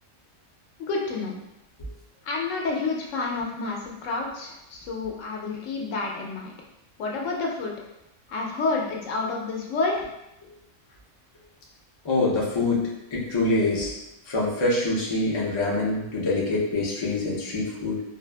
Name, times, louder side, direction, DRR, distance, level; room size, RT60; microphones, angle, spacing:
voice 1, 0.8-1.4 2.3-6.5 7.0-7.7 8.3-10.1, left 3 dB, 75° left, -1 dB, 0.9 m, -29 dB
voice 2, 12.0-13.9 14.3-18.0, left 2 dB, 45° left, -5 dB, 0.4 m, -25 dB
2.6 x 2.4 x 2.2 m, 0.87 s
omnidirectional pair, 1.3 m